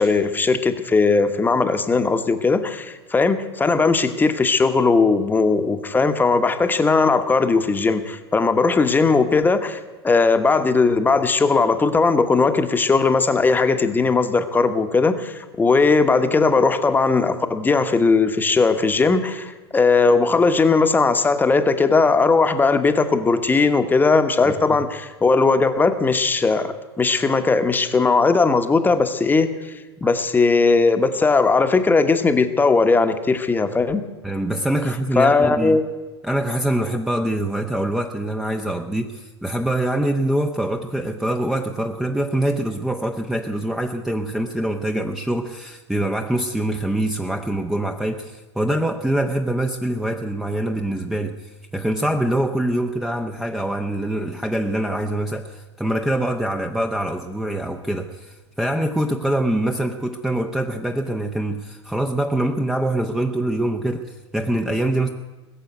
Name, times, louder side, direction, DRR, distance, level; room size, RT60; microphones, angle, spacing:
voice 1, 0.0-29.5 30.0-34.1 35.2-35.8, left 4 dB, 15° left, 9 dB, 1.2 m, -18 dB
voice 2, 34.2-35.8 36.2-65.1, right 1 dB, 5° right, 4 dB, 0.9 m, -24 dB
20.0 x 7.5 x 9.3 m, 1.2 s
figure-of-eight pair, 90°, 14 cm